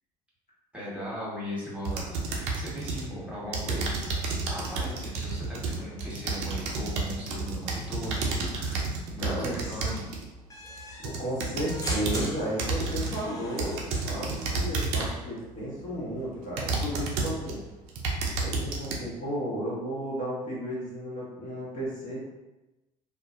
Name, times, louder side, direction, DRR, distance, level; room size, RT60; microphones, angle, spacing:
voice 1, 0.7-3.9 4.5-10.0, equal, 5° right, -8 dB, 1.3 m, -38 dB
sound 1, 1.9-3.1 3.5-10.3 10.8-12.3 12.6-13.2 13.6-15.2 15.8-15.9 16.6-17.5 17.9-19.0, right 3 dB, 70° right, 0.5 m, -31 dB
voice 2, 9.2-9.8 11.0-17.6 18.4-22.2, equal, 45° left, -7 dB, 1.1 m, -34 dB
sound 2, 10.5-14.5, left 1 dB, 20° left, 0.7 m, -41 dB
2.6 x 2.1 x 2.5 m, 1.0 s
hypercardioid pair, 60°, 19 cm